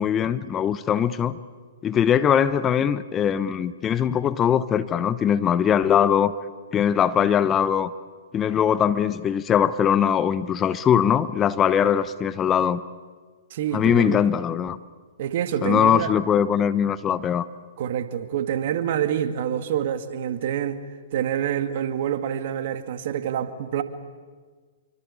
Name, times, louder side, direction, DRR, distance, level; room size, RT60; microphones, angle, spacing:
voice 1, 0.0-1.4 1.8-6.3 6.7-7.9 8.3-12.8 13.7-14.8 15.6-17.5, left 8 dB, 20° left, 15 dB, 0.9 m, -21 dB
voice 2, 13.5-14.2 15.2-16.1 17.8-20.8 21.1-23.8, right 10 dB, 55° right, 9 dB, 2.2 m, -26 dB
27.0 x 24.0 x 8.5 m, 1.5 s
hypercardioid pair, 125°, 0 cm